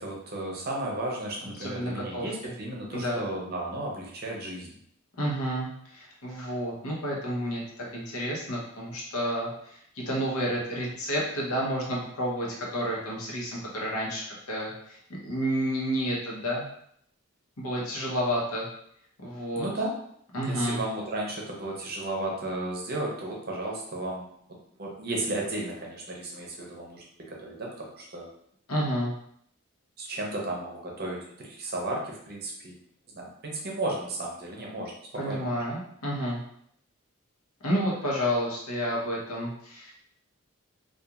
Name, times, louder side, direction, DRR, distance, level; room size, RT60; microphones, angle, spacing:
voice 1, 0.0-4.7 19.6-19.9 20.4-24.3 24.8-28.3 30.0-32.7 33.1-34.9 35.3-35.5, right 2 dB, 45° right, -2 dB, 0.6 m, -34 dB
voice 2, 1.6-2.5 2.9-3.2 5.1-16.7 17.6-18.7 19.2-19.7 20.3-20.8 28.7-29.1 35.1-36.4 37.6-39.9, equal, 85° left, -3 dB, 0.9 m, -30 dB
2.8 x 2.3 x 2.4 m, 0.69 s
head